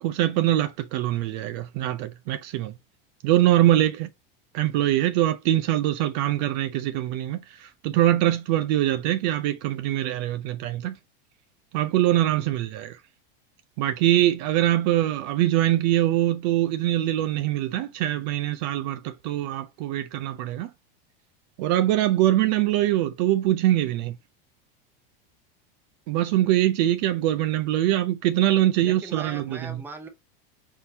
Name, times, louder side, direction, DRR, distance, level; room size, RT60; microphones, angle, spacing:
voice 1, 0.0-2.7 3.2-4.1 4.5-11.0 11.7-13.0 13.8-20.7 21.6-24.1 26.1-29.8, right 14 dB, 50° right, 0.5 m, -23 dB
voice 2, 28.8-30.1, right 4 dB, 5° right, 0.7 m, -40 dB
4.3 x 3.7 x 2.7 m
supercardioid pair, 155°, 29 cm